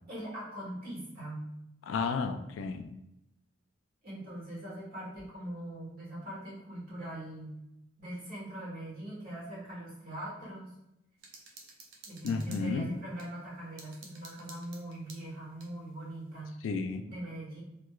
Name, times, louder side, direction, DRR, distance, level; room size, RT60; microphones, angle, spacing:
voice 1, 0.1-1.5 4.0-7.6 8.0-10.7 12.1-16.6 17.0-17.6, right 1 dB, 50° right, -5 dB, 1.5 m, -41 dB
voice 2, 1.9-2.9 12.2-12.9 16.6-17.0, left 4 dB, 70° left, 8 dB, 0.3 m, -32 dB
sound 1, 11.2-13.3 13.8-15.7, right 3 dB, 70° right, 0.6 m, -52 dB
3.2 x 3.0 x 2.2 m, 0.85 s
head